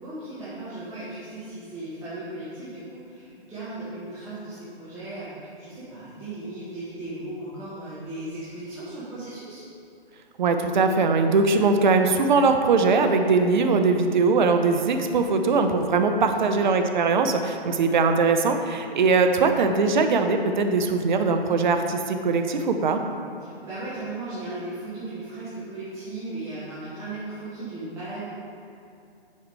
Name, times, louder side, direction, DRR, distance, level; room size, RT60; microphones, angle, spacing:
voice 1, 0.0-9.6 16.3-16.7 23.4-28.2, right 2 dB, 10° right, -13 dB, 1.3 m, -37 dB
voice 2, 10.4-23.0, right 4 dB, 50° right, 6 dB, 0.7 m, -21 dB
8.2 x 4.9 x 4.7 m, 2.7 s
figure-of-eight pair, 140°, 31 cm